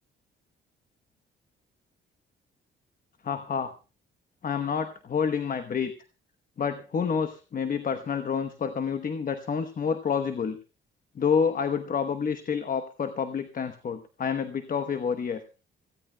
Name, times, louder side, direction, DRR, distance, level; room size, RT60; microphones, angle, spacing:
voice 1, 3.2-3.7 4.4-5.9 6.6-10.6 11.1-15.4, left 6 dB, 45° left, 9 dB, 1.0 m, -28 dB
25.5 x 16.0 x 2.2 m, 0.33 s
cardioid pair, 90°, 20 cm